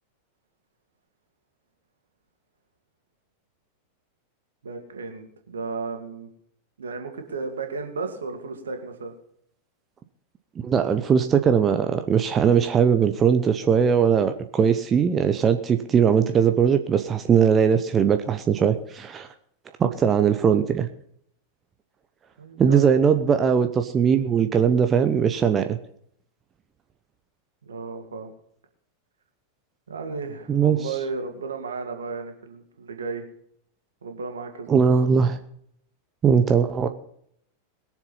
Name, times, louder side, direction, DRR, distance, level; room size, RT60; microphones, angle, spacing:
voice 1, 4.6-6.3 6.8-9.1 22.4-22.9 27.7-28.3 29.9-33.3 34.0-34.8, right 4 dB, 70° right, 4 dB, 2.5 m, -34 dB
voice 2, 10.6-19.3 19.8-20.9 22.6-25.8 30.5-30.9 34.7-35.4 36.2-36.9, right 7 dB, 25° right, 7 dB, 0.9 m, -20 dB
21.5 x 7.3 x 5.7 m, 0.68 s
figure-of-eight pair, 90°, 0 cm